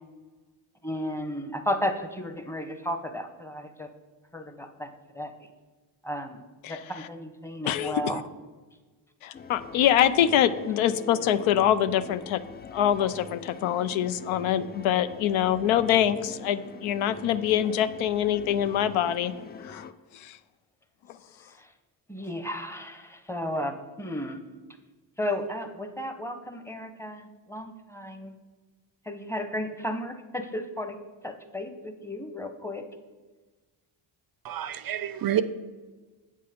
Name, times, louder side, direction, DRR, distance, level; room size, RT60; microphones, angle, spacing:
voice 1, 0.8-3.9 4.3-5.3 6.0-8.2 21.5-21.7 22.1-24.4 25.2-28.3 29.0-31.0 31.2-32.9, left 1 dB, 5° left, 7 dB, 0.9 m, -34 dB
voice 2, 7.7-8.2 9.2-12.4 12.7-19.3 19.6-19.9 20.1-20.4, left 10 dB, 80° left, 13 dB, 0.6 m, -24 dB
sound 1, 9.3-19.9, left 5 dB, 25° left, 0.4 m, -43 dB
voice 3, 34.4-35.4, right 11 dB, 50° right, 14 dB, 0.5 m, -28 dB
7.7 x 5.5 x 5.1 m, 1.3 s
cardioid pair, 70°, 47 cm